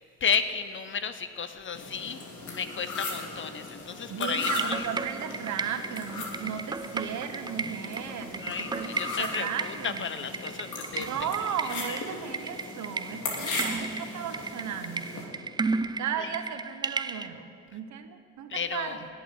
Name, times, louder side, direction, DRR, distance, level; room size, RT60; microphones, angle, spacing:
voice 1, 0.2-2.2 2.5-4.9 8.4-11.1 11.9-12.0 16.2-16.3 18.5-19.0, left 6 dB, 40° left, 11 dB, 0.8 m, -33 dB
sound 1, 1.7-15.2, left 3 dB, 75° left, 2.7 m, -38 dB
voice 2, 4.1-10.1 11.0-15.4 16.0-19.1, right 8 dB, 70° right, 9 dB, 1.0 m, -36 dB
sound 2, 4.3-17.3, right 4 dB, 15° right, 0.4 m, -35 dB
19.5 x 7.2 x 6.2 m, 2.4 s
cardioid pair, 90°, 30 cm